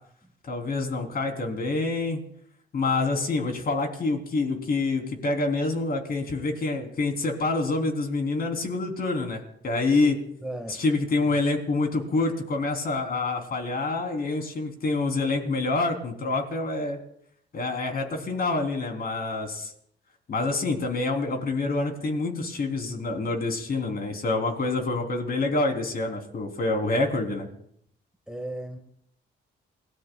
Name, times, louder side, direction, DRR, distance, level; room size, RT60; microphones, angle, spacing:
voice 1, 0.5-2.2 2.7-10.2 10.7-17.0 17.5-19.7 20.3-27.5, left 3 dB, 50° left, 3 dB, 3.6 m, -27 dB
voice 2, 10.4-10.8 28.3-28.8, right 1 dB, 5° right, 3 dB, 1.8 m, -35 dB
28.5 x 18.5 x 2.4 m, 0.69 s
cardioid pair, 90°, 20 cm